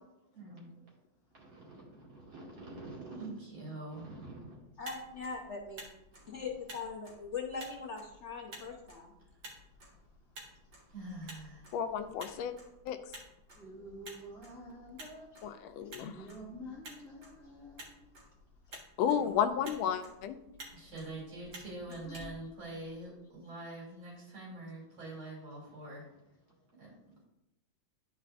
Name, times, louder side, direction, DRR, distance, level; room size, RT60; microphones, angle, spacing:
voice 1, 0.3-0.7 3.1-4.0 10.9-11.8 20.7-26.1 26.8-26.9, right 2 dB, 90° right, -4 dB, 3.7 m, -44 dB
voice 2, 1.3-3.3 3.9-4.6 5.1-5.2 6.2-6.4 13.8-14.2 16.5-16.7 17.9-18.0 25.7-25.8, right 2 dB, 70° right, -4 dB, 2.9 m, -50 dB
Motor vehicle (road), 4.6-23.2, right 1 dB, 55° right, 2.0 m, -53 dB
voice 3, 4.8-5.8 6.3-9.1, left 4 dB, 45° left, 0 dB, 1.0 m, -41 dB
voice 4, 11.7-12.5 12.9-13.0 15.4-16.3 19.0-20.4, left 8 dB, 80° left, 8 dB, 1.4 m, -32 dB
voice 5, 13.5-15.6 16.0-17.8 19.1-20.0 20.6-20.7 21.5-22.2, equal, ahead, -8 dB, 1.3 m, -49 dB
11.5 x 4.7 x 2.5 m, 0.86 s
omnidirectional pair, 2.2 m